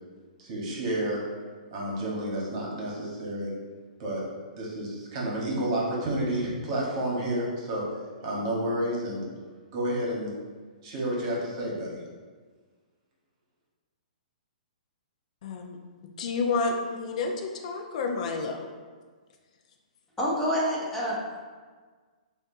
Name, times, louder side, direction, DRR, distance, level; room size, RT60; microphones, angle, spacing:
voice 1, 0.4-1.2 1.7-3.5 4.0-4.2 4.6-7.9 8.2-9.2 9.7-10.3 10.8-12.0, right 1 dB, 40° right, -3 dB, 1.2 m, -30 dB
voice 2, 15.4-15.8 16.0-18.7, left 4 dB, 55° left, 3 dB, 0.5 m, -30 dB
voice 3, 20.2-21.4, equal, 5° left, -6 dB, 0.7 m, -27 dB
6.4 x 2.5 x 2.6 m, 1.5 s
hypercardioid pair, 155°, 5 cm